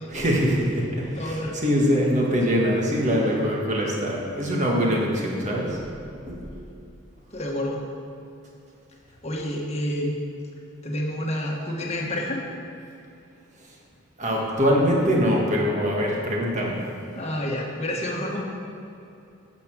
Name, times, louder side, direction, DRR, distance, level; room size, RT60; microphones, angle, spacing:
voice 1, 0.1-5.8 6.3-6.6 14.2-16.8, equal, 35° right, -2 dB, 1.7 m, -23 dB
voice 2, 1.1-1.5 7.3-7.8 9.2-10.2 10.8-12.4 17.1-18.5, left 1 dB, 30° left, -1 dB, 1.4 m, -29 dB
9.6 x 6.7 x 6.2 m, 2.6 s
head